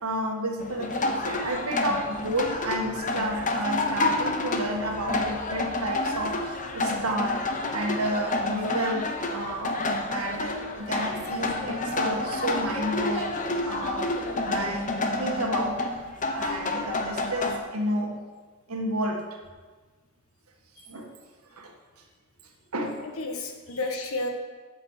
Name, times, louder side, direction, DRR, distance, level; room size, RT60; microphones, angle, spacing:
voice 1, 0.0-7.4 7.7-9.7 10.1-13.4 13.7-16.0 16.3-18.2 18.7-19.3 20.9-21.1 21.5-21.8 22.7-23.0, right 1 dB, 85° right, 2 dB, 1.6 m, -31 dB
sound 1, 0.6-17.6, left 2 dB, 35° left, 0.9 m, -29 dB
voice 2, 23.0-24.3, left 2 dB, 75° left, 4 dB, 1.4 m, -32 dB
8.4 x 7.3 x 6.5 m, 1.4 s
head